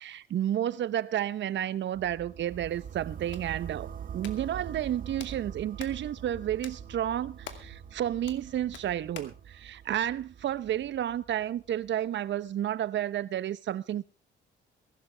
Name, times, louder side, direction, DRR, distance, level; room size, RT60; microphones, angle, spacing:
voice 1, 0.0-14.0, right 11 dB, 65° right, 1.0 m, -31 dB
sound 1, 1.9-11.9, right 8 dB, 45° right, 0.7 m, -44 dB
Hands, 2.9-9.4, left 8 dB, 70° left, 2.4 m, -50 dB
22.0 x 12.0 x 3.5 m
cardioid pair, 90°, 20 cm